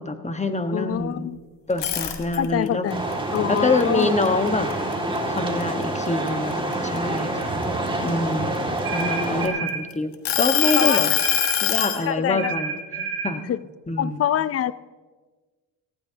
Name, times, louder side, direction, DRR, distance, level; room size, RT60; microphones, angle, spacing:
voice 1, 0.0-1.3 1.7-2.8 3.5-4.7 5.3-7.5 8.0-8.6 8.9-11.1 11.6-12.7 13.2-13.4 13.9-14.2, left 2 dB, 15° left, 7 dB, 1.3 m, -25 dB
voice 2, 0.7-1.4 2.4-3.0 3.3-4.2 10.8-11.2 12.1-12.5 13.0-13.1 13.5-13.6 14.0-14.7, left 10 dB, 35° left, 18 dB, 0.5 m, -25 dB
sound 1, 1.7-2.7 3.1-4.9 5.4-5.6 6.1-7.9 8.6-9.7 10.2-12.0, left 12 dB, 75° left, 1.5 m, -23 dB
sound 2, 2.9-9.5, right 1 dB, 10° right, 2.2 m, -27 dB
sound 3, 8.8-9.8 10.6-11.6 12.4-13.4, right 6 dB, 60° right, 2.7 m, -29 dB
19.0 x 15.0 x 2.8 m, 1.4 s
supercardioid pair, 75°, 43 cm